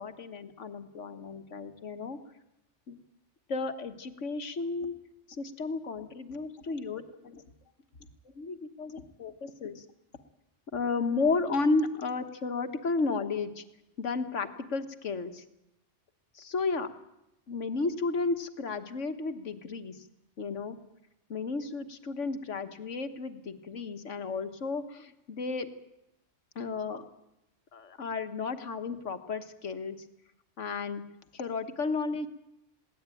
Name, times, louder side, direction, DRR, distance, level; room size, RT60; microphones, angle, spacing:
voice 1, 0.0-2.2 2.9-3.0 3.5-4.9 5.4-7.4 8.4-9.9 10.7-13.6 14.0-15.4 16.4-16.9 17.5-20.1 20.4-20.8 21.3-25.7 26.6-27.0 27.7-30.0 30.6-31.0 31.3-32.3, left 4 dB, 75° left, 9 dB, 1.7 m, -33 dB
21.5 x 18.0 x 9.1 m, 0.90 s
omnidirectional pair, 1.3 m